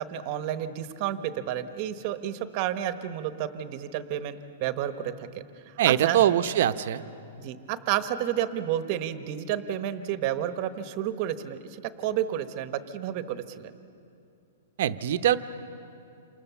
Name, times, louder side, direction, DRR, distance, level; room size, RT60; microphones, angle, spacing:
voice 1, 0.0-5.3 5.7-6.2 7.4-13.7, right 11 dB, 30° right, 10 dB, 1.1 m, -31 dB
voice 2, 5.8-7.0 14.8-15.4, right 11 dB, 50° right, 10 dB, 0.9 m, -23 dB
28.0 x 28.0 x 7.0 m, 2.6 s
hypercardioid pair, 170°, 0 cm